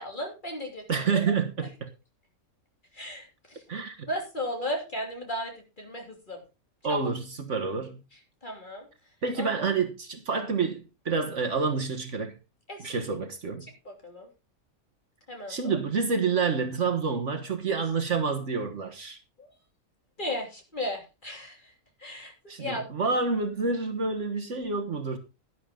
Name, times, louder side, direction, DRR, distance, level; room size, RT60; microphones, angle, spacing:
voice 1, 0.0-1.3 2.9-3.6 4.1-6.4 6.9-7.0 8.4-8.9 9.4-9.7 10.3-10.4 12.7-12.9 13.8-14.3 15.3-15.8 19.4-19.5 20.2-21.7 22.0-22.3 22.6-22.9, left 1 dB, 30° left, 3.1 m, -35 dB
voice 2, 0.9-1.9 3.7-4.1 6.8-8.0 9.2-12.4 12.8-13.7 15.5-19.2 22.5-25.2, right 4 dB, 55° right, 1.6 m, -28 dB
11.5 x 10.5 x 3.8 m
omnidirectional pair, 1.5 m